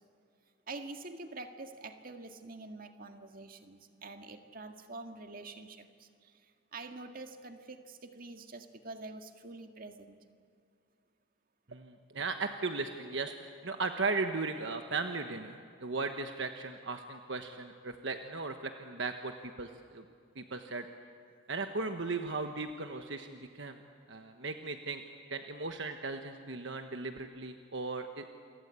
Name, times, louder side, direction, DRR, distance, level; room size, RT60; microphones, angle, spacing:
voice 1, 0.7-10.2, right 3 dB, 45° right, 6 dB, 1.9 m, -46 dB
voice 2, 11.7-20.0 20.4-20.9 21.5-23.8 24.1-25.0 25.3-28.3, right 3 dB, 65° right, 6 dB, 1.3 m, -37 dB
28.5 x 23.5 x 8.4 m, 2.3 s
head